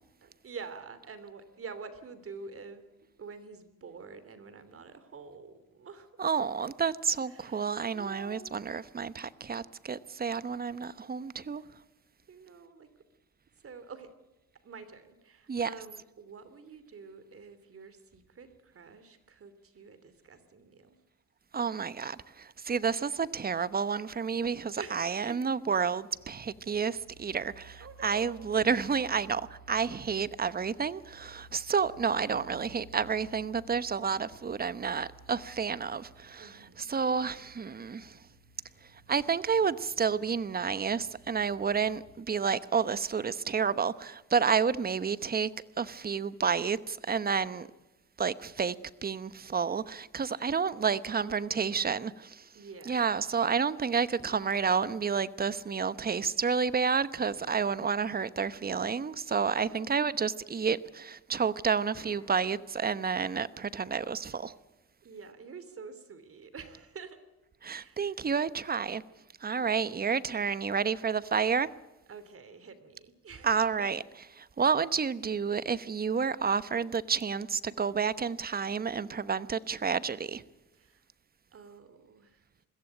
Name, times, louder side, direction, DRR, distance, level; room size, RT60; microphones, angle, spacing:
voice 1, 0.2-2.8 3.2-6.1 7.3-8.5 11.6-11.7 12.3-12.9 13.6-14.1 14.6-21.0 24.8-25.5 27.8-28.3 36.4-36.9 51.2-52.2 52.5-53.3 59.7-60.3 65.0-67.2 67.7-68.2 69.5-70.0 72.1-73.9 80.7-81.1 81.5-82.4, right 5 dB, 50° right, 3.1 m, -48 dB
voice 2, 6.2-11.6 15.5-15.7 21.5-38.2 39.1-45.5 45.8-47.7 48.2-48.8 49.0-52.5 52.9-64.5 67.6-69.0 69.4-71.7 73.4-74.0 74.4-80.4, right 6 dB, 30° right, 1.0 m, -30 dB
sound 1, 26.1-42.1, right 3 dB, 70° right, 7.0 m, -57 dB
sound 2, 54.2-55.4 57.3-58.6 61.9-63.2, left 2 dB, 15° left, 6.1 m, -58 dB
22.0 x 15.5 x 9.0 m
cardioid pair, 90°, 30 cm